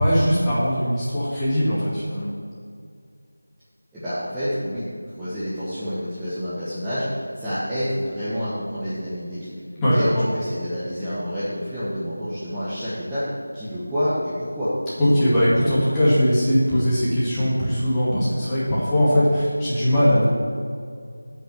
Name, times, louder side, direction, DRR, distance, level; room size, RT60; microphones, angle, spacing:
voice 1, 0.0-2.3 9.8-10.3 15.0-20.4, equal, 10° left, -11 dB, 2.0 m, -20 dB
voice 2, 3.9-9.5 9.9-13.2 13.5-14.7, equal, 5° right, -16 dB, 1.3 m, -28 dB
8.8 x 5.5 x 7.2 m, 2.3 s
figure-of-eight pair, 170°, 0 cm